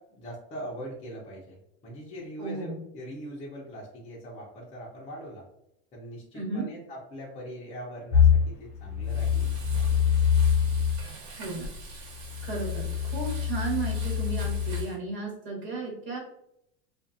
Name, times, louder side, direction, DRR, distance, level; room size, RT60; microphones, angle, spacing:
voice 1, 0.0-5.4 5.9-9.5, equal, 20° left, -5 dB, 0.6 m, -41 dB
voice 2, 2.4-2.8 6.3-6.7 11.4-11.7 12.4-16.2, right 3 dB, 35° right, -3 dB, 1.3 m, -34 dB
sound 1, 8.1-11.0 11.6-14.8, left 7 dB, 70° left, 0.7 m, -25 dB
Frying (food), 9.0-15.0, right 3 dB, 75° right, 1.5 m, -46 dB
2.4 x 2.4 x 2.5 m, 0.78 s
supercardioid pair, 120°, 31 cm